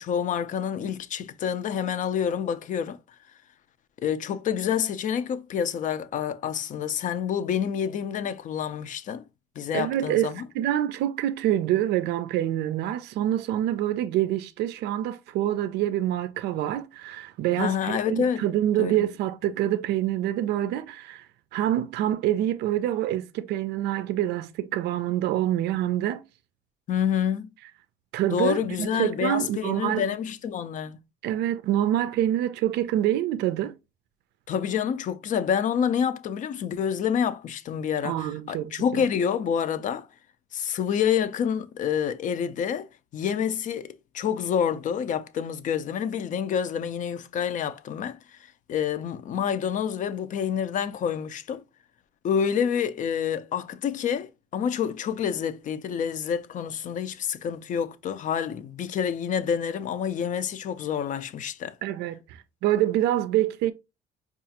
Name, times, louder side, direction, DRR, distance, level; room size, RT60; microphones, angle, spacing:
voice 1, 0.0-3.0 4.0-9.3 9.6-10.4 17.6-18.4 18.8-19.0 26.9-27.5 28.3-31.0 34.5-40.1 40.5-42.9 43.1-48.4 48.7-51.6 52.2-61.8, left 8 dB, 50° left, 0.5 m, -28 dB
voice 2, 9.7-21.3 21.5-26.2 28.1-30.0 31.2-33.7 38.0-39.0 61.8-63.7, right 12 dB, 80° right, 0.4 m, -26 dB
4.7 x 2.4 x 2.8 m
cardioid pair, 110°, 17 cm